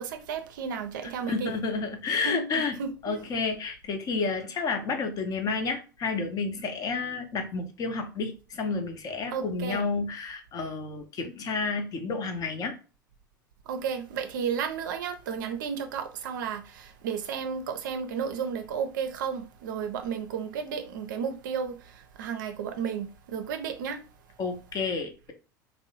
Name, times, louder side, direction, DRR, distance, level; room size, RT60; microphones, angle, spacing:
voice 1, 0.0-1.5 2.2-3.2 9.3-9.8 13.7-24.0, right 6 dB, 65° right, 0.4 m, -33 dB
voice 2, 1.0-2.8 3.0-12.7 24.4-25.3, left 4 dB, 35° left, 0.6 m, -30 dB
2.6 x 2.0 x 2.7 m
figure-of-eight pair, 80°, 11 cm